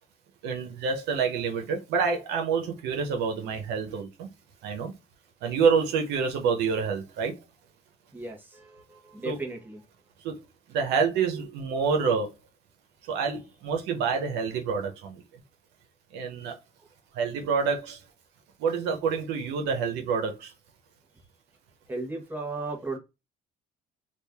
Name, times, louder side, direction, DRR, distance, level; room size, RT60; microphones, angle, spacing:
voice 1, 0.4-4.3 4.6-4.9 5.4-7.3 9.2-9.4 10.2-10.4 10.7-12.3 13.1-15.2 16.1-16.6 17.1-18.0 18.6-20.5, right 5 dB, 85° right, 0.9 m, -27 dB
voice 2, 8.1-9.8 21.9-23.0, right 2 dB, 10° right, 1.1 m, -35 dB
3.0 x 2.5 x 3.5 m
cardioid pair, 110°, 17 cm